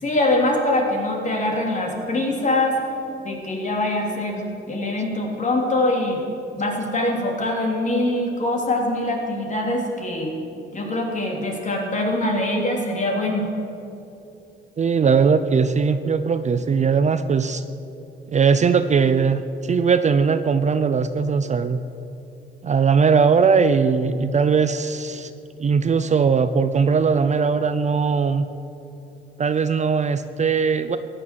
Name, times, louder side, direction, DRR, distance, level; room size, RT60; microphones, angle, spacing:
voice 1, 0.0-2.8 3.2-6.2 6.6-10.4 10.7-13.5, left 1 dB, 40° left, 0 dB, 3.3 m, -23 dB
voice 2, 14.8-17.6 18.3-21.8 22.6-25.3 25.6-28.5 29.4-31.0, right 5 dB, 35° right, 11 dB, 0.6 m, -19 dB
15.0 x 10.0 x 7.6 m, 2.8 s
cardioid pair, 90°, 20 cm